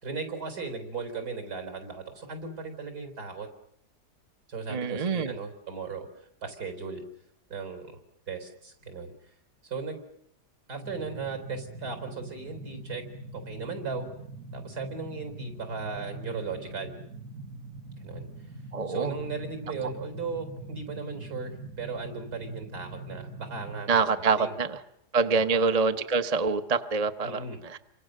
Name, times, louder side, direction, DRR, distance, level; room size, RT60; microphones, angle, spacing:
voice 1, 0.0-3.5 4.5-6.1 6.4-7.0 7.5-8.0 8.3-9.1 9.6-10.0 10.7-13.0 13.3-14.1 14.5-17.0 18.0-18.3 18.9-24.6 25.4-25.6 27.2-27.6, right 4 dB, 70° right, 7 dB, 4.8 m, -37 dB
voice 2, 4.7-5.3 18.7-19.1 23.9-24.8 25.1-27.8, right 4 dB, 30° right, 8 dB, 0.9 m, -26 dB
sound 1, 10.8-23.8, right 2 dB, 50° right, 1.8 m, -43 dB
29.0 x 25.0 x 6.5 m, 0.73 s
omnidirectional pair, 1.8 m